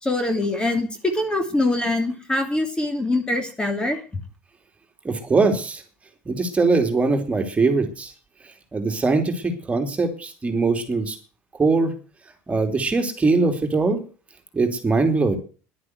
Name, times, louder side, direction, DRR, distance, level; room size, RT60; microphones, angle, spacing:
voice 1, 0.0-4.0, left 2 dB, 15° left, 6 dB, 2.8 m, -23 dB
voice 2, 5.0-5.8 6.3-8.1 8.7-11.2 11.6-11.9 12.5-14.0 14.5-15.4, right 3 dB, 25° right, 5 dB, 2.9 m, -21 dB
11.0 x 9.6 x 8.0 m, 0.38 s
supercardioid pair, 85°, 5 cm